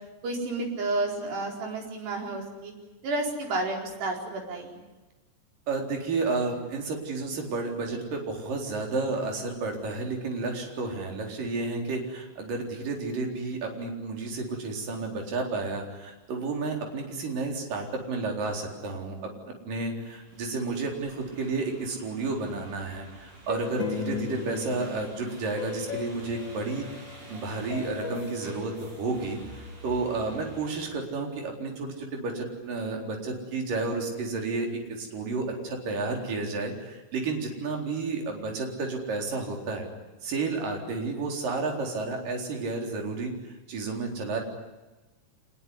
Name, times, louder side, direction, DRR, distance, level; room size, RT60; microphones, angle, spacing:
voice 1, 0.2-2.7 3.0-4.8, right 2 dB, 75° right, 1 dB, 6.7 m, -31 dB
voice 2, 5.7-26.9 27.3-39.9 40.2-44.4, right 3 dB, 55° right, 2 dB, 5.6 m, -31 dB
sound 1, 19.9-30.9, right 1 dB, 40° right, 7.0 m, -49 dB
sound 2, 23.5-27.3 27.7-29.7, left 5 dB, 40° left, 1.9 m, -37 dB
25.5 x 21.0 x 9.9 m, 1.1 s
omnidirectional pair, 4.9 m